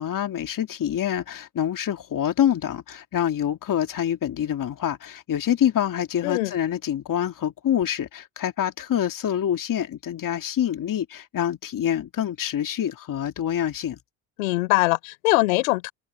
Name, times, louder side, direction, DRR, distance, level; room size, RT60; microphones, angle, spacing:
voice 1, 0.0-14.0, left 10 dB, 50° left, 2.4 m, -26 dB
voice 2, 14.4-15.9, left 22 dB, 90° left, 4.5 m, -22 dB
hypercardioid pair, 60°, 40 cm